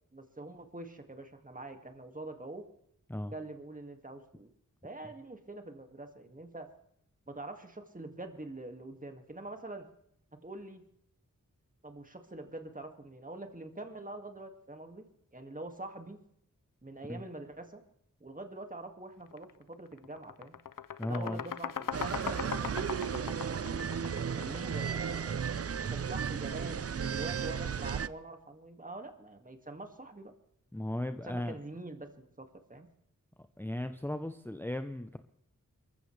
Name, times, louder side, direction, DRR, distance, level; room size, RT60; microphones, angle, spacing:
voice 1, 0.1-2.6 3.3-4.5 4.8-6.7 7.3-9.8 10.4-10.8 11.8-15.1 15.3-16.2 16.8-17.8 18.2-20.5 21.0-23.8 24.4-25.4 25.9-30.3 31.3-32.9, right 2 dB, 25° right, 5 dB, 2.2 m, -45 dB
sound 1, 19.3-19.5 19.9-24.8, left 8 dB, 80° left, 0.7 m, -39 dB
voice 2, 21.0-21.4 30.7-31.6 33.6-35.2, left 1 dB, 5° left, 8 dB, 0.8 m, -36 dB
sound 2, 21.9-28.1, right 7 dB, 50° right, 0.5 m, -34 dB
24.5 x 14.5 x 3.4 m, 0.70 s
wide cardioid pair, 50°, 32 cm